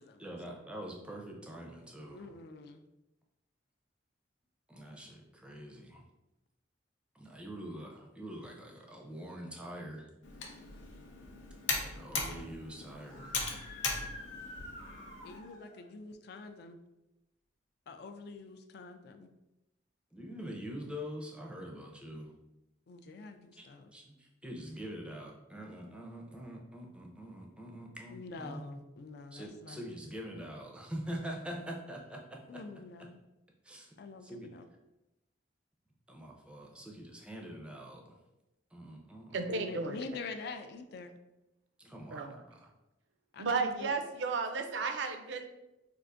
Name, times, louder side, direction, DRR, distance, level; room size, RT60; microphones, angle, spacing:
voice 1, 0.2-2.4 4.7-6.0 7.1-10.1 11.9-13.3 20.1-22.3 23.6-28.8 29.3-32.6 33.6-33.9 34.2-34.5 36.1-38.2 38.7-39.7 41.8-42.7, equal, 5° right, 0 dB, 0.5 m, -44 dB
voice 2, 2.1-2.8 15.2-16.8 17.9-19.3 22.9-23.9 28.1-29.8 32.5-33.2 34.0-34.6 39.5-41.1 43.3-43.9, left 3 dB, 60° left, 8 dB, 0.3 m, -46 dB
Computer keyboard, 10.2-15.4, left 4 dB, 90° left, 0.6 m, -39 dB
Screaming, 13.0-15.8, left 3 dB, 25° left, 0.9 m, -47 dB
voice 3, 39.3-40.0 42.1-42.3 43.4-45.5, right 4 dB, 70° right, 7 dB, 0.4 m, -33 dB
4.6 x 2.4 x 2.5 m, 0.95 s
head